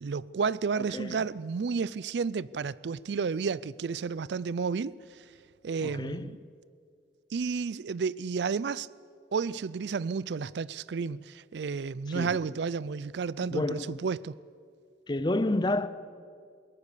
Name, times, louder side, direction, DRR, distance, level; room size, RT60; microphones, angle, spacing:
voice 1, 0.0-5.0 5.6-6.4 7.3-8.9 9.3-14.4, right 5 dB, 75° right, 0.4 m, -31 dB
voice 2, 0.8-1.3 5.8-6.5 12.1-12.4 13.5-14.1 15.1-15.9, left 2 dB, 25° left, 0.5 m, -30 dB
21.5 x 18.0 x 6.7 m
head